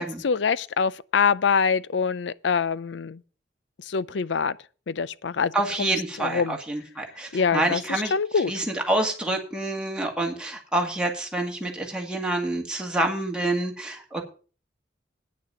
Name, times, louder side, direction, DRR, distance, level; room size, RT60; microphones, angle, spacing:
voice 1, 0.0-3.2 3.9-4.6 4.9-5.5 5.8-6.6 7.3-8.5, left 6 dB, 75° left, 0.5 m, -25 dB
voice 2, 5.5-8.1 8.5-14.2, right 1 dB, 5° right, 2.1 m, -27 dB
9.4 x 6.6 x 7.1 m
head